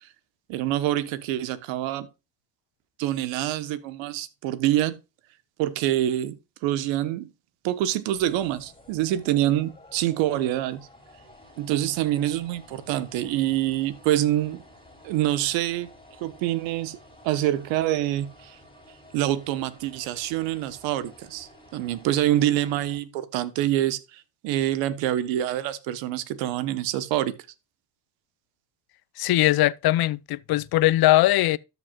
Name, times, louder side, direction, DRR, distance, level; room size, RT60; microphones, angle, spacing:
voice 1, 0.5-2.1 3.0-5.0 5.6-6.3 6.6-7.3 7.6-10.9 11.6-14.6 15.0-15.9 16.2-17.0 17.2-18.6 19.1-27.3, right 13 dB, 85° right, 1.2 m, -26 dB
sound 1, 8.1-23.0, left 1 dB, 10° left, 3.3 m, -52 dB
voice 2, 29.2-31.6, left 15 dB, 55° left, 0.6 m, -20 dB
13.5 x 5.8 x 2.4 m
supercardioid pair, 75°, 44 cm